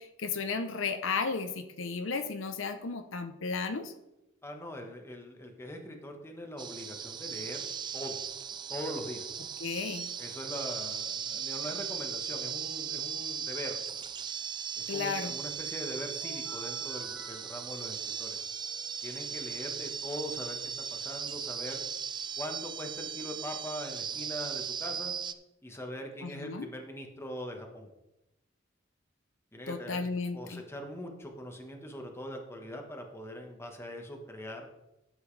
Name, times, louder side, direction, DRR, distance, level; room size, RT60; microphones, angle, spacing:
voice 1, 0.0-3.9 9.6-10.1 14.9-15.3 26.2-26.7 29.7-30.6, left 4 dB, 75° left, 8 dB, 0.7 m, -34 dB
voice 2, 4.4-8.2 8.7-9.3 10.2-13.8 14.8-18.4 19.0-20.6 20.9-21.8 22.4-25.2 25.6-27.9 29.5-30.0 30.3-34.7, equal, 15° left, 3 dB, 1.2 m, -41 dB
sound 1, 6.6-25.3, right 7 dB, 25° right, 0.3 m, -37 dB
sound 2, 16.2-19.8, equal, 5° right, 1.9 m, -54 dB
11.5 x 7.5 x 3.3 m, 0.91 s
head